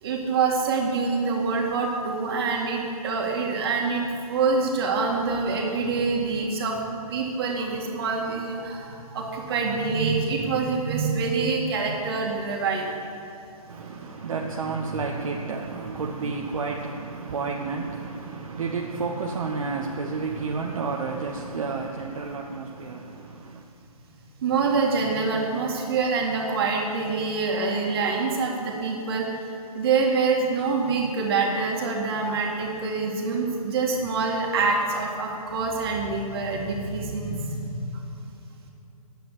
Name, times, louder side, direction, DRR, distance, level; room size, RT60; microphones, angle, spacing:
voice 1, 0.0-13.0 24.4-29.3 29.7-37.8, right 4 dB, 40° right, 2.1 m, -26 dB
voice 2, 13.7-23.6, right 4 dB, 60° right, 1.1 m, -31 dB
9.7 x 8.4 x 8.1 m
hypercardioid pair, 155°, 19 cm